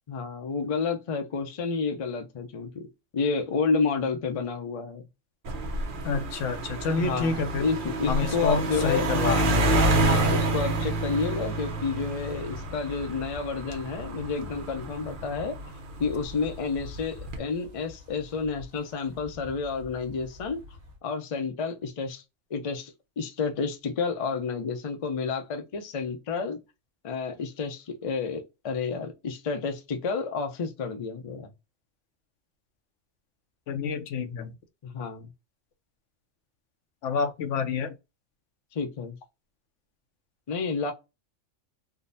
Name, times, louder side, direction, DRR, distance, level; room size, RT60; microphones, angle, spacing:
voice 1, 0.1-2.8 3.1-5.1 7.0-9.5 10.0-15.6 16.0-20.6 21.0-22.2 22.5-26.6 27.0-31.5 34.8-35.3 38.7-39.2 40.5-40.9, left 5 dB, 40° left, 0.5 m, -30 dB
sound 1, 5.5-16.2 17.0-17.4, right 2 dB, 50° right, 0.8 m, -28 dB
voice 2, 6.0-7.7 8.1-9.7 33.7-34.5 37.0-37.9, left 5 dB, 85° left, 1.0 m, -28 dB
Wind, 11.8-21.0, left 3 dB, 70° right, 1.3 m, -46 dB
3.6 x 2.1 x 2.6 m
omnidirectional pair, 1.2 m